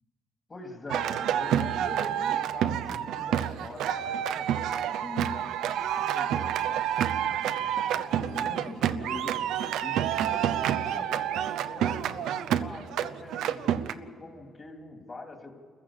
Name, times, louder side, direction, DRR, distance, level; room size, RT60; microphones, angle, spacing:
voice 1, 0.5-5.5 6.1-6.9 7.1-9.4 9.8-12.3 12.6-15.5, left 2 dB, 30° left, 4 dB, 2.8 m, -43 dB
sound 1, 0.9-13.9, right 10 dB, 85° right, 0.7 m, -29 dB
27.0 x 15.0 x 7.3 m, 2.3 s
cardioid pair, 95°, 0 cm